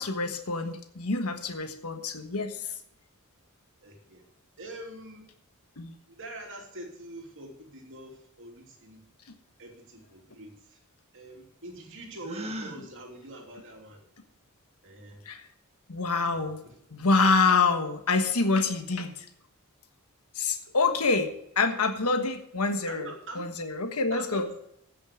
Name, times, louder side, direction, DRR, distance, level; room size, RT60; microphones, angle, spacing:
voice 1, 0.0-2.6 5.8-5.9 15.3-15.4 15.9-16.6 16.9-19.1 20.4-23.1 23.4-24.5, left 4 dB, 85° left, 6 dB, 1.3 m, -26 dB
voice 2, 3.8-4.2 4.6-5.3 6.1-9.0 9.6-10.8 11.1-14.0 14.8-15.2 16.3-16.7 20.5-20.8 22.9-23.5 24.1-24.6, right 1 dB, 60° right, 1 dB, 2.9 m, -44 dB
Gasp, 12.2-12.8, right 1 dB, 30° right, 1.5 m, -36 dB
15.5 x 6.5 x 5.0 m, 0.75 s
head